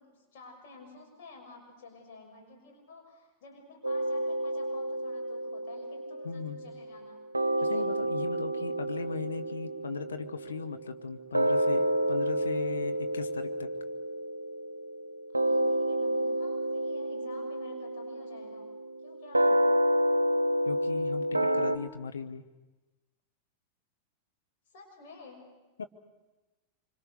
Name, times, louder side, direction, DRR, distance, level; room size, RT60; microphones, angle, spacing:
voice 1, 0.0-7.2 7.5-7.9 15.3-18.6 19.0-19.7 24.7-25.5, left 3 dB, 50° left, 1 dB, 6.3 m, -51 dB
sound 1, 3.8-7.1 7.3-21.8, right 1 dB, 80° right, 0.7 m, -30 dB
voice 2, 6.2-6.6 7.7-13.7 20.6-22.4 25.8-25.9, left 6 dB, 70° left, 7 dB, 1.3 m, -38 dB
25.5 x 25.5 x 6.7 m, 1.1 s
figure-of-eight pair, 90°, 0 cm